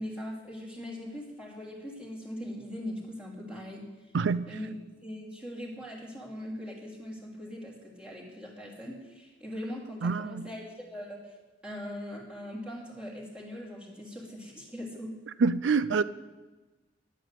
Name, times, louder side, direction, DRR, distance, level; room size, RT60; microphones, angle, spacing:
voice 1, 0.0-3.9 4.5-4.8 5.0-11.2 11.6-15.2, equal, 5° right, 3.0 m, -40 dB
voice 2, 4.1-4.5 10.0-10.5 15.4-16.0, right 4 dB, 80° right, 0.5 m, -26 dB
10.5 x 9.1 x 7.6 m
head